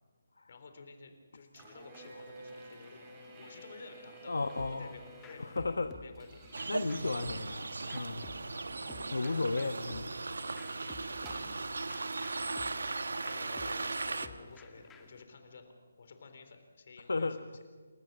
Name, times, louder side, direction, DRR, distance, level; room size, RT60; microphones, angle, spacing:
voice 1, 0.5-3.1 3.3-6.4 13.3-17.6, left 4 dB, 50° left, 7 dB, 3.8 m, -52 dB
sound 1, 1.5-11.4, right 2 dB, 20° right, 5.7 m, -54 dB
voice 2, 4.3-4.9 5.4-5.9 6.7-8.3 9.1-10.1 17.1-17.6, left 3 dB, 75° left, 8 dB, 1.1 m, -34 dB
sound 2, 4.6-15.2, left 5 dB, 10° left, 1.9 m, -55 dB
sound 3, 6.5-14.3, right 3 dB, 75° right, 1.3 m, -38 dB
28.5 x 14.0 x 7.5 m, 1.5 s
figure-of-eight pair, 155°, 0 cm